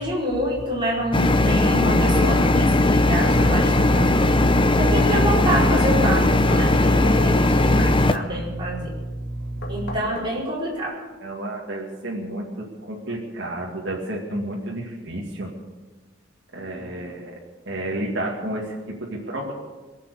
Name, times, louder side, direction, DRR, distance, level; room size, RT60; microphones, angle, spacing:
voice 1, 0.0-4.3 4.8-8.9 9.7-11.0, right 1 dB, 25° right, -5 dB, 5.0 m, -27 dB
sound 1, 1.1-8.2, left 2 dB, 25° left, 0.7 m, -18 dB
voice 2, 2.8-5.3 6.6-10.0 11.2-15.5 16.5-17.4 17.7-19.5, right 1 dB, 65° right, -4 dB, 2.2 m, -31 dB
sound 2, 3.2-4.5 6.5-7.8 9.6-10.8, left 1 dB, 55° left, 2.1 m, -37 dB
22.0 x 7.7 x 8.2 m, 1.3 s
head